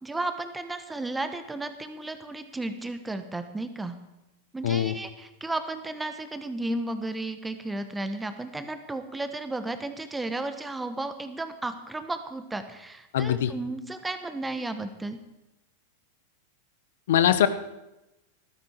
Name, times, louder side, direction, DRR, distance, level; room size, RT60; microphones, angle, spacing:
voice 1, 0.0-3.9 4.5-15.2, right 2 dB, 10° right, 9 dB, 1.3 m, -33 dB
voice 2, 4.6-4.9 13.1-13.5 17.1-17.5, left 10 dB, 70° left, 13 dB, 0.7 m, -22 dB
14.5 x 12.0 x 4.6 m, 0.97 s
hypercardioid pair, 105°, 0 cm